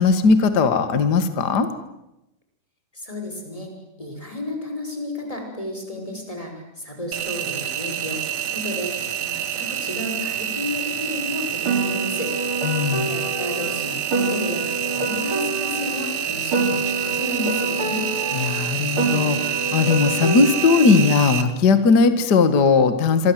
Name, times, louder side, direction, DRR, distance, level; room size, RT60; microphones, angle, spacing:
voice 1, 0.0-1.7 12.6-13.1 18.3-23.3, left 4 dB, 40° left, 9 dB, 1.8 m, -18 dB
voice 2, 2.9-3.7 4.0-12.7 13.0-18.1, left 1 dB, 10° left, 3 dB, 5.7 m, -32 dB
Engine, 7.1-21.4, right 9 dB, 55° right, 2.4 m, -27 dB
Piano, 11.6-16.1 16.5-21.1, right 2 dB, 40° right, 4.0 m, -27 dB
26.5 x 25.5 x 7.8 m, 0.90 s
omnidirectional pair, 3.8 m